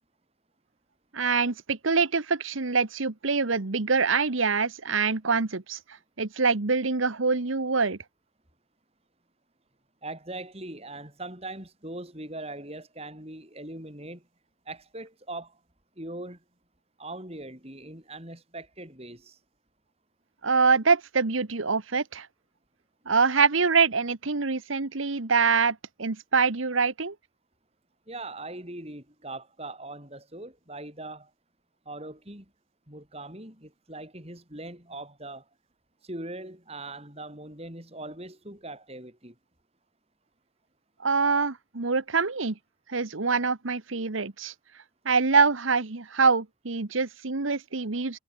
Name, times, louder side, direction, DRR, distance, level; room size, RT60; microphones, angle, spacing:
voice 1, 1.1-5.8 6.2-8.0 20.4-22.3 23.0-27.1 41.0-42.6 42.9-44.5 45.0-48.2, right 4 dB, 80° right, 1.3 m, -25 dB
voice 2, 10.0-14.2 14.7-15.6 16.0-16.4 17.0-19.4 28.1-31.3 31.9-32.5 32.9-35.4 36.0-39.4, right 2 dB, 30° right, 7.0 m, -40 dB
head